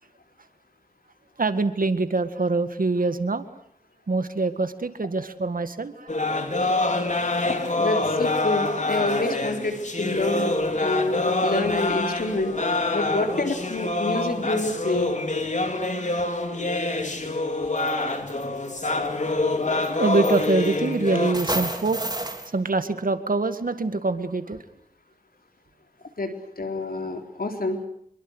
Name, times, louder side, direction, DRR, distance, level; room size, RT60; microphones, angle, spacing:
voice 1, 1.4-3.5 4.1-6.1 17.5-17.6 19.2-19.4 20.0-22.0 22.5-24.6, right 3 dB, 70° right, 10 dB, 2.0 m, -25 dB
sound 1, 6.1-21.3, left 2 dB, 55° left, 3.6 m, -26 dB
voice 2, 7.4-10.5 10.8-12.5 12.9-15.1 26.2-27.8, left 2 dB, 80° left, 5 dB, 4.0 m, -27 dB
sound 2, 17.8-17.9 18.3-18.7 19.8-19.9 20.2-20.9 21.3-22.5, right 1 dB, 25° right, 3.7 m, -30 dB
27.0 x 22.5 x 8.2 m, 0.68 s
wide cardioid pair, 70°, 15 cm